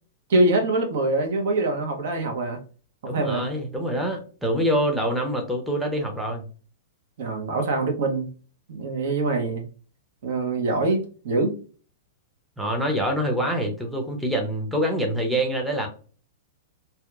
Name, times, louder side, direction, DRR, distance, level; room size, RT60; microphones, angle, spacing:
voice 1, 0.3-2.6 3.0-3.4 7.2-8.3 8.7-9.7 10.2-11.5, right 2 dB, 65° right, 3 dB, 0.8 m, -24 dB
voice 2, 3.1-6.5 12.6-15.9, equal, 5° right, 1 dB, 0.6 m, -25 dB
2.8 x 2.2 x 2.4 m, 0.38 s
hypercardioid pair, 135°, 0 cm